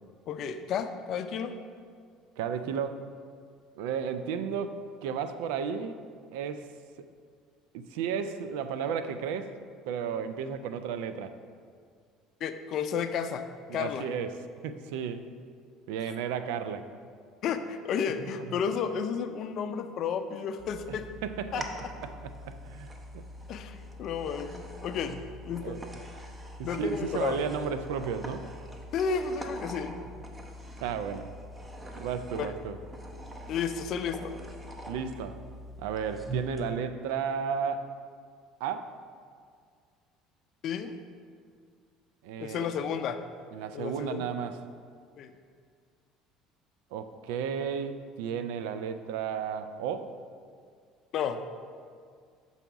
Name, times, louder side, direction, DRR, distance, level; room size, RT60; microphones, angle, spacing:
voice 1, 0.3-1.5 12.4-13.4 13.7-14.1 17.4-21.1 21.5-21.6 23.5-25.2 25.4-25.8 26.6-27.5 28.9-30.0 32.4-32.5 33.5-34.3 40.6-40.9 42.4-43.2 43.7-44.2 45.2-45.3 51.1-51.4, left 7 dB, 55° left, 9 dB, 0.4 m, -32 dB
voice 2, 2.4-3.1 3.8-6.0 6.3-6.7 7.0-7.1 7.7-9.5 9.9-11.4 13.7-15.3 15.9-16.9 18.4-18.6 20.9-21.7 21.9-23.2 25.6-25.8 26.6-28.4 30.8-31.3 32.0-32.8 34.9-35.4 35.8-38.0 38.6-38.9 42.2-42.7 43.5-44.6 46.9-50.2, right 7 dB, 80° right, 10 dB, 0.4 m, -33 dB
sound 1, 20.6-36.6, right 1 dB, 20° right, 0.8 m, -43 dB
6.9 x 4.1 x 4.6 m, 2.1 s
hypercardioid pair, 75°, 0 cm